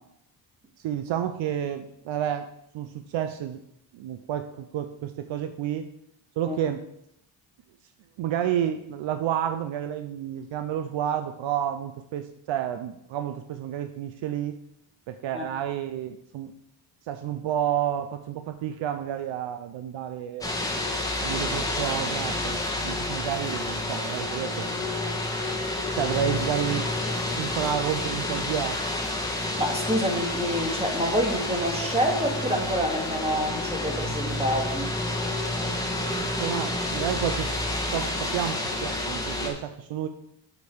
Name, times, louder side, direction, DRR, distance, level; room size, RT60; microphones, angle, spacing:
voice 1, 0.8-2.5 2.7-3.6 3.9-5.9 6.4-6.8 8.2-14.6 15.1-16.5 17.1-20.5 21.2-24.7 26.0-26.9 27.4-28.8 36.4-37.5 37.9-40.1, right 10 dB, 65° right, 8 dB, 0.7 m, -30 dB
sound 1, 20.4-39.5, left 1 dB, 5° left, 2.0 m, -29 dB
voice 2, 29.6-34.9, equal, 10° right, 1 dB, 2.2 m, -27 dB
6.9 x 5.4 x 6.3 m, 0.77 s
supercardioid pair, 75°, 49 cm